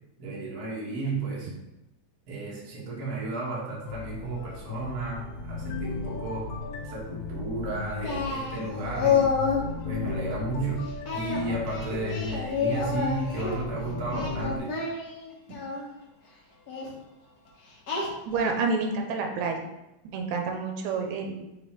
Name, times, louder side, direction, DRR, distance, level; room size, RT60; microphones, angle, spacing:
voice 1, 0.2-1.5 2.3-6.5 6.8-9.3 9.8-10.8 11.1-14.8, right 2 dB, 45° right, -5 dB, 1.3 m, -33 dB
sound 1, 3.9-14.6, left 3 dB, 80° left, 1.9 m, -36 dB
Singing, 8.0-9.7 11.1-13.6 14.1-15.8 16.7-16.9 17.9-18.5, left 5 dB, 60° left, 1.0 m, -29 dB
voice 2, 18.3-19.7 20.1-21.4, right 4 dB, 80° right, 3 dB, 2.0 m, -28 dB
6.0 x 3.6 x 4.4 m, 0.94 s
omnidirectional pair, 3.3 m